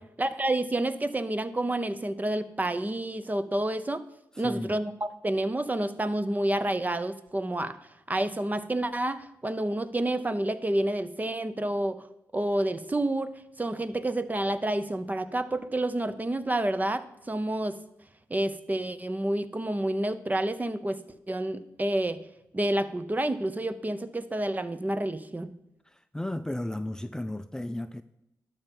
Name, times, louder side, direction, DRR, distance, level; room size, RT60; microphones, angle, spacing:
voice 1, 0.2-4.0 4.4-7.8 8.1-12.0 12.3-13.3 13.6-17.8 18.3-21.0 21.3-22.2 22.5-25.5, right 1 dB, 25° right, 12 dB, 0.7 m, -29 dB
voice 2, 4.3-4.7 25.8-28.0, left 1 dB, 10° left, 11 dB, 0.5 m, -34 dB
12.0 x 5.7 x 5.3 m, 0.87 s
supercardioid pair, 50°, 7 cm